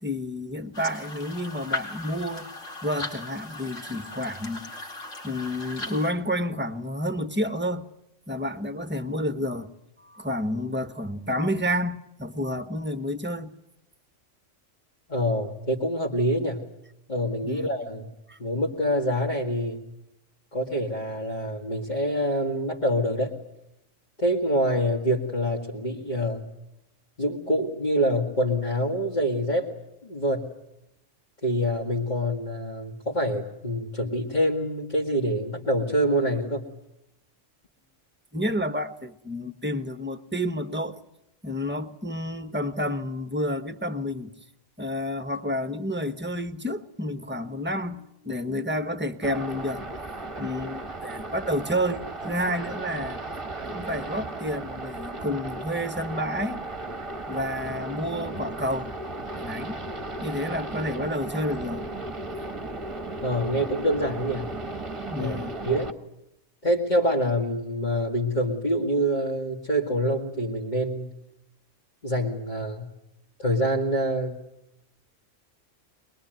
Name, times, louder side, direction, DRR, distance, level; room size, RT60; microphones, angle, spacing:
voice 1, 0.0-2.5 2.8-4.7 5.2-7.9 8.3-9.7 10.0-13.5 17.4-17.7 18.3-18.4 38.3-41.0 41.4-44.3 44.8-49.9 50.4-53.2 53.7-56.6 57.3-59.0 59.3-59.8 60.2-61.9 65.1-65.6, equal, 10° right, 1.1 m, -30 dB
sound 1, 0.7-6.1, left 2 dB, 75° left, 4.3 m, -37 dB
voice 2, 15.1-16.7 17.1-18.1 18.4-19.8 20.5-23.4 24.2-26.5 27.2-29.7 30.0-30.5 31.4-36.7 63.2-64.5 65.2-65.4 65.6-65.9 66.6-71.1 72.0-72.9 73.4-74.4, equal, 35° left, 2.3 m, -26 dB
sound 2, 49.2-65.9, right 2 dB, 25° right, 1.3 m, -35 dB
22.5 x 22.5 x 9.1 m
omnidirectional pair, 1.3 m